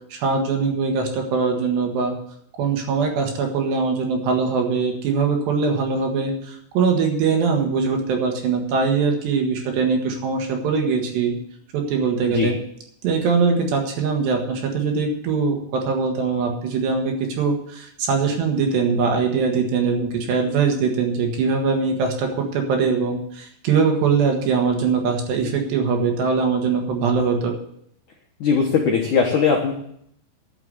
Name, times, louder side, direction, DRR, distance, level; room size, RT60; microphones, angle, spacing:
voice 1, 0.1-2.2 2.6-11.4 11.7-12.5 13.0-27.6, right 5 dB, 65° right, 2 dB, 3.5 m, -22 dB
voice 2, 28.4-29.7, left 6 dB, 85° left, 0 dB, 1.7 m, -19 dB
11.5 x 7.1 x 7.9 m, 0.68 s
omnidirectional pair, 5.9 m